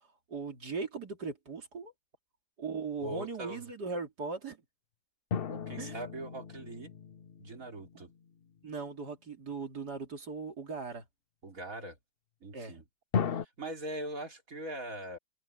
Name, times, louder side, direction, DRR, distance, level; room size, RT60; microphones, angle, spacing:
voice 1, 0.3-1.9 2.6-4.6 5.8-5.9 8.0-8.1 8.6-11.0 12.5-12.8, right 4 dB, 80° right, 3.5 m, -39 dB
voice 2, 3.0-3.6 5.5-6.9 7.4-8.1 11.4-12.0 12.4-12.8 13.2-15.2, right 1 dB, 55° right, 3.7 m, -41 dB
sound 1, 5.3-8.2 13.1-13.5, left 7 dB, 50° left, 0.7 m, -36 dB
omnidirectional pair, 1.7 m